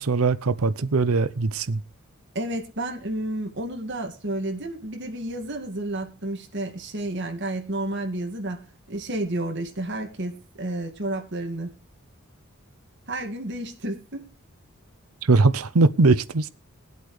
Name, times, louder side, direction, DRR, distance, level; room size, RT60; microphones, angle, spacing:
voice 1, 0.0-1.8 15.2-16.5, right 3 dB, 90° right, 0.7 m, -20 dB
voice 2, 2.3-8.6 8.9-11.7 13.1-14.2, right 1 dB, 55° right, 2.1 m, -31 dB
21.0 x 8.2 x 3.3 m
head